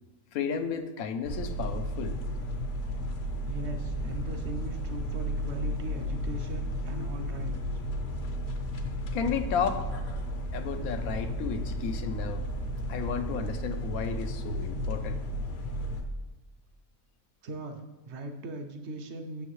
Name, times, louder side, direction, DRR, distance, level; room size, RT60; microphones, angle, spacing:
voice 1, 0.3-2.2 9.1-9.9 10.5-12.4 12.9-15.2, left 6 dB, 75° left, 8 dB, 1.1 m, -33 dB
sound 1, 1.2-16.0, equal, 55° left, 0.9 m, -33 dB
voice 2, 3.5-7.8 17.4-19.5, right 1 dB, 60° right, 6 dB, 0.8 m, -39 dB
8.8 x 6.4 x 3.1 m, 1.2 s
omnidirectional pair, 1.5 m